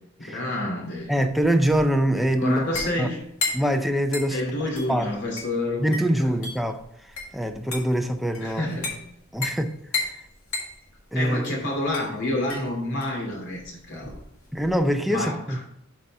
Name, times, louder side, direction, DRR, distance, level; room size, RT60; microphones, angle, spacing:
voice 1, 0.2-1.1 2.4-3.2 4.3-6.3 8.4-9.1 11.1-14.2 15.1-15.6, left 1 dB, 55° left, 2.6 m, -29 dB
sound 1, 0.9-14.9, left 3 dB, 85° left, 2.3 m, -35 dB
voice 2, 1.1-2.6 3.0-3.1 3.5-4.4 4.9-5.1 5.8-8.6 9.3-10.1 11.1-11.5 14.5-15.6, equal, ahead, 0.4 m, -24 dB
7.5 x 4.1 x 5.3 m
head